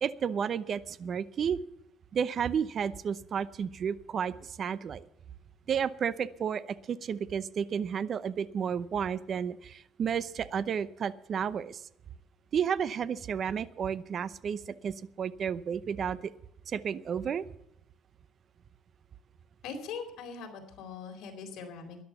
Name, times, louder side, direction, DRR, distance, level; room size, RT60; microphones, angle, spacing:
voice 1, 0.0-1.6 2.1-5.0 5.7-11.8 12.5-16.3 16.7-17.5, right 7 dB, 45° right, 17 dB, 0.7 m, -32 dB
voice 2, 19.6-22.0, left 5 dB, 65° left, 4 dB, 3.9 m, -41 dB
13.5 x 11.0 x 7.0 m, 0.78 s
cardioid pair, 125°, 0 cm